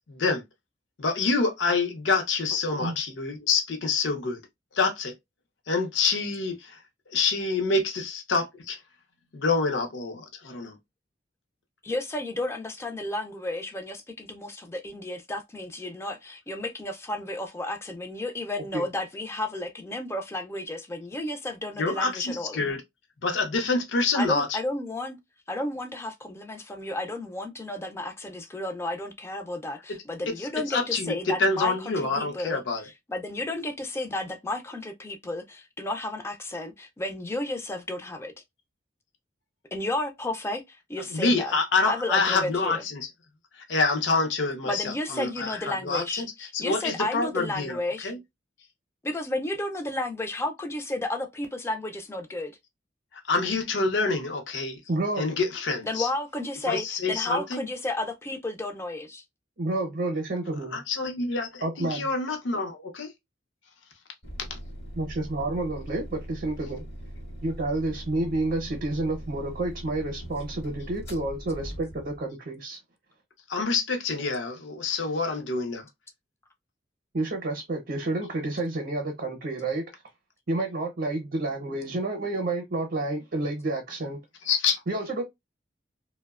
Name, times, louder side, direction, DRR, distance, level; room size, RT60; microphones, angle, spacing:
voice 1, 0.1-0.4 1.0-4.4 4.7-5.1 5.7-6.6 7.1-8.8 9.3-10.7 21.8-22.8 23.2-24.6 30.4-32.8 41.1-43.1 43.7-45.6 45.8-46.3 46.5-48.2 53.3-54.8 55.2-56.1 56.7-57.6 60.7-63.1 73.5-75.9 84.5-84.8, left 3 dB, 75° left, 0.6 m, -27 dB
voice 2, 11.8-22.6 24.1-25.2 25.5-38.3 39.7-41.5 41.8-42.8 44.7-48.1 49.0-52.5 55.8-59.2, left 1 dB, 15° left, 0.3 m, -32 dB
voice 3, 54.9-55.3 59.6-60.8 61.6-62.1 65.0-66.8 67.4-72.8 77.1-79.8 80.5-84.2 84.9-85.2, right 2 dB, 55° right, 0.6 m, -29 dB
sound 1, 64.2-72.3, equal, 60° left, 1.0 m, -41 dB
2.7 x 2.1 x 2.3 m
head